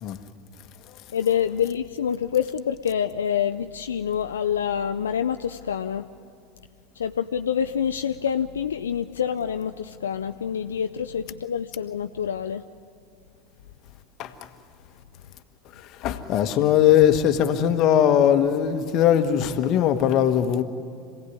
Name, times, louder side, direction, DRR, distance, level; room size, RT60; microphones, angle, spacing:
voice 1, 1.1-6.1 7.0-12.6, left 8 dB, 80° left, 0.5 m, -26 dB
voice 2, 16.0-20.6, left 10 dB, 45° left, 1.5 m, -20 dB
26.5 x 17.5 x 9.5 m
hypercardioid pair, 80°, 0 cm